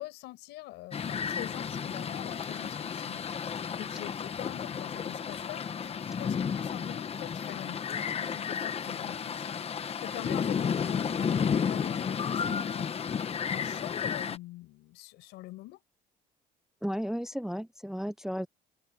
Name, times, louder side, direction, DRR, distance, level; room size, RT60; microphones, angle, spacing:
voice 1, 0.0-3.2 3.8-5.9 6.2-12.9 13.5-15.8, left 18 dB, 90° left, 5.4 m, -44 dB
sound 1, 0.9-14.4, left 7 dB, 35° left, 1.1 m, -32 dB
voice 2, 16.8-18.5, equal, 5° right, 0.4 m, -34 dB
cardioid pair, 110°, 17 cm